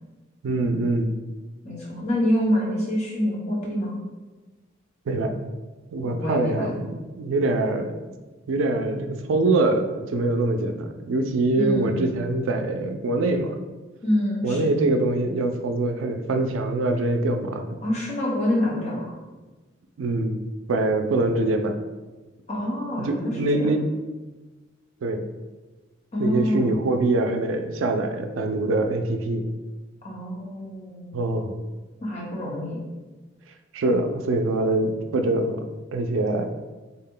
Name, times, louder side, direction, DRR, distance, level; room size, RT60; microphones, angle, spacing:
voice 1, 0.4-1.1 5.1-5.3 5.9-8.0 8.5-13.6 14.4-17.8 20.0-20.4 20.7-21.8 23.0-23.8 25.0-25.2 26.2-29.5 31.1-31.6 33.7-35.6 35.9-36.5, right 2 dB, 85° right, 6 dB, 0.4 m, -24 dB
voice 2, 1.6-4.0 6.0-6.7 11.5-12.1 14.0-14.7 17.8-19.1 22.5-23.7 26.1-26.8 30.0-31.2 32.0-32.8, left 1 dB, 35° left, -4 dB, 1.0 m, -26 dB
3.9 x 2.1 x 3.7 m, 1.2 s
head